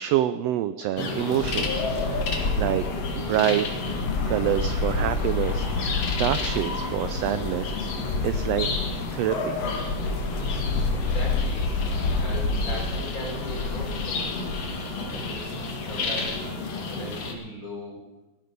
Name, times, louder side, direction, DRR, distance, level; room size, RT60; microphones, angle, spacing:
voice 1, 0.0-2.8 3.1-3.7 4.3-8.7 9.1-9.6, right 12 dB, 80° right, 12 dB, 1.5 m, -27 dB
sound 1, 1.0-17.3, left 3 dB, 55° left, 2.9 m, -28 dB
voice 2, 10.9-14.5 15.1-15.5 15.8-16.5 16.9-18.0, equal, 25° left, -2 dB, 5.0 m, -38 dB
18.0 x 12.5 x 5.4 m, 1.1 s
omnidirectional pair, 3.4 m